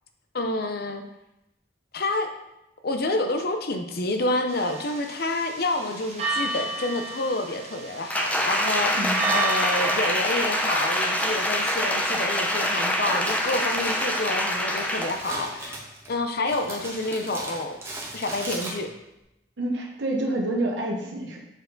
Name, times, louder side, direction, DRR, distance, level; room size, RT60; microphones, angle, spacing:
voice 1, 0.3-1.0 1.9-2.3 2.8-8.9 9.3-15.7 16.1-17.8 18.1-18.9, left 2 dB, 60° left, 5 dB, 0.7 m, -28 dB
sound 1, 4.5-11.2, right 3 dB, 35° right, 0.9 m, -33 dB
Applause, 8.1-15.2 15.7-15.8, equal, 10° left, 0.7 m, -25 dB
voice 2, 8.9-9.3 19.6-21.4, right 1 dB, 85° right, 0 dB, 1.0 m, -28 dB
Crumpling crinkling, 10.5-19.2, right 1 dB, 15° right, 1.3 m, -40 dB
7.1 x 4.6 x 3.9 m, 0.90 s
head